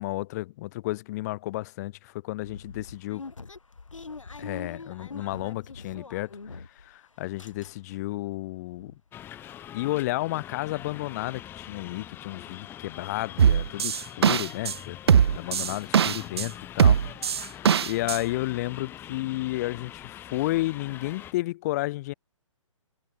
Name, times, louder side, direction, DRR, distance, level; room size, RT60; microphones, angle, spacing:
voice 1, 0.0-3.2 4.4-8.9 9.7-17.0 17.3-22.1, left 18 dB, 30° left, 2.0 m, -32 dB
sound 1, 2.4-6.9 7.2-8.1 8.4-8.5 8.7-9.0, left 4 dB, 70° left, 4.5 m, -43 dB
sound 2, 9.1-21.3, left 11 dB, 15° left, 1.1 m, -43 dB
sound 3, 13.4-14.7 15.1-16.5 16.8-18.2, right 8 dB, 50° right, 0.7 m, -20 dB
figure-of-eight pair, 130°, 17 cm